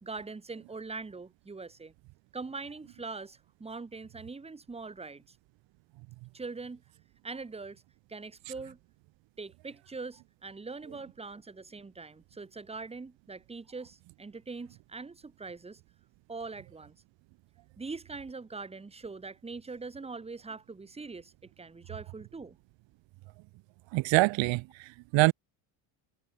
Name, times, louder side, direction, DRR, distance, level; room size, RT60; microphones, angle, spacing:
voice 1, 0.0-1.9 2.3-5.4 6.3-6.8 7.2-7.8 8.1-8.8 9.4-15.8 16.3-16.9 17.8-22.6, right 4 dB, 10° right, 2.3 m, -42 dB
voice 2, 23.9-25.3, right 22 dB, 65° right, 0.7 m, -25 dB
cardioid pair, 170°, 48 cm